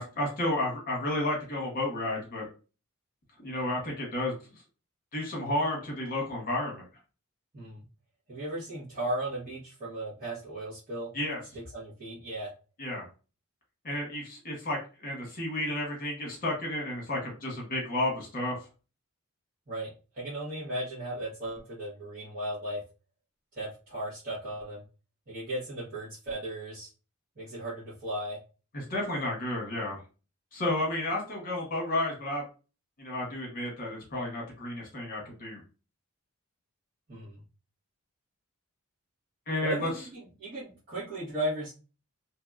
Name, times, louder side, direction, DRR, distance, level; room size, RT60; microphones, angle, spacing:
voice 1, 0.0-2.5 3.4-4.3 5.1-6.8 11.1-11.4 12.8-13.1 13.8-18.6 28.7-30.0 30.5-32.4 33.0-35.6 39.5-39.9, left 1 dB, 40° left, -2 dB, 1.1 m, -32 dB
voice 2, 8.3-11.1 11.7-12.5 19.7-19.9 20.1-22.8 23.5-24.8 25.3-26.9 27.4-28.4 37.1-37.4 39.6-41.7, right 1 dB, 40° right, -10 dB, 1.4 m, -36 dB
2.9 x 2.7 x 2.4 m, 0.34 s
head